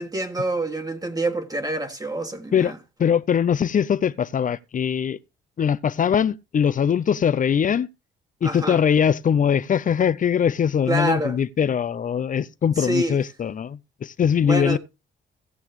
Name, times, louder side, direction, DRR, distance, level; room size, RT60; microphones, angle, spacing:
voice 1, 0.0-2.7 8.4-8.8 10.9-11.4 12.8-13.2 14.4-14.8, right 1 dB, 20° right, 1.6 m, -26 dB
voice 2, 3.0-5.2 5.6-7.9 8.4-14.8, left 8 dB, 40° left, 0.6 m, -21 dB
16.5 x 7.1 x 3.2 m
cardioid pair, 90°, 20 cm